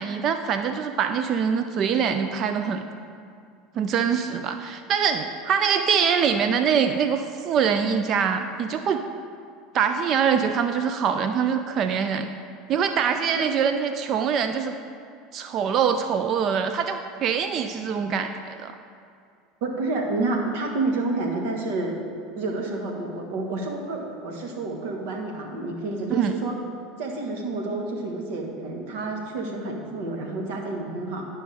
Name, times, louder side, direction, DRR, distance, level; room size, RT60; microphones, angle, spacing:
voice 1, 0.0-2.8 3.8-9.0 9.7-12.3 12.7-14.8 15.3-18.7 26.1-26.4, right 7 dB, 50° right, 8 dB, 0.4 m, -24 dB
voice 2, 19.6-21.9 22.3-26.6 27.0-31.2, right 2 dB, 70° right, 1 dB, 1.4 m, -29 dB
11.5 x 5.5 x 3.4 m, 2.3 s
hypercardioid pair, 80°, 0 cm